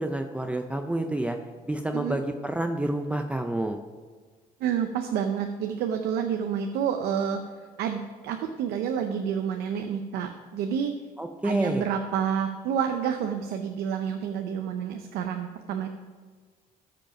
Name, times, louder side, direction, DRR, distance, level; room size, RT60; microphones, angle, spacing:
voice 1, 0.0-1.4 1.7-3.8 11.2-11.8, right 1 dB, 10° right, 5 dB, 0.5 m, -29 dB
voice 2, 4.6-7.4 7.8-10.9 11.4-15.9, right 8 dB, 90° right, 5 dB, 0.7 m, -29 dB
13.5 x 5.3 x 5.8 m, 1.5 s
cardioid pair, 115°, 16 cm